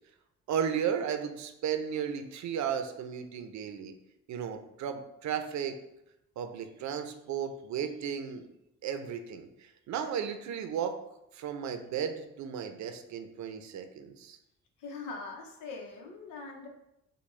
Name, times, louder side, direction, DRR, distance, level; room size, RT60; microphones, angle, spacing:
voice 1, 0.5-3.9 4.3-5.8 6.4-8.5 8.8-11.0 11.3-14.4, right 8 dB, 70° right, 7 dB, 0.6 m, -34 dB
voice 2, 14.8-16.7, left 4 dB, 90° left, 1 dB, 0.9 m, -42 dB
6.7 x 2.3 x 3.2 m, 0.85 s
cardioid pair, 90°, 30 cm